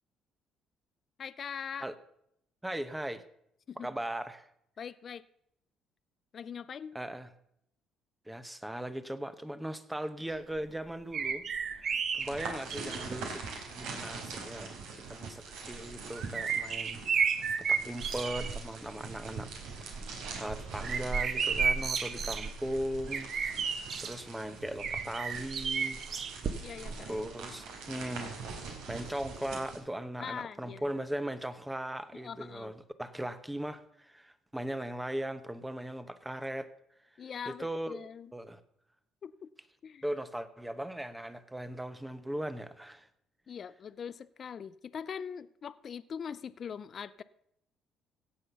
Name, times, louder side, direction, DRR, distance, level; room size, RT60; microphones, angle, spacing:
voice 1, 1.2-1.9 3.7-3.9 4.8-5.2 6.3-7.0 26.6-27.3 30.2-30.9 32.1-32.7 37.2-38.3 39.2-39.5 39.8-40.0 43.5-47.2, left 7 dB, 40° left, 15 dB, 0.4 m, -42 dB
voice 2, 2.6-3.2 3.8-4.5 6.9-7.3 8.3-13.4 13.7-19.5 20.1-23.3 24.0-26.0 27.1-36.7 37.5-38.0 38.3-38.6 40.0-43.1, right 1 dB, 5° right, 12 dB, 0.9 m, -38 dB
sound 1, 11.1-13.2 14.0-14.1 15.7-18.6 19.0-19.4 19.8-24.2 24.8-26.9 27.2-27.3, right 6 dB, 45° right, 1.1 m, -32 dB
sound 2, 12.2-29.8, right 4 dB, 85° right, 3.4 m, -44 dB
16.5 x 5.7 x 6.8 m, 0.74 s
cardioid pair, 125°, 0 cm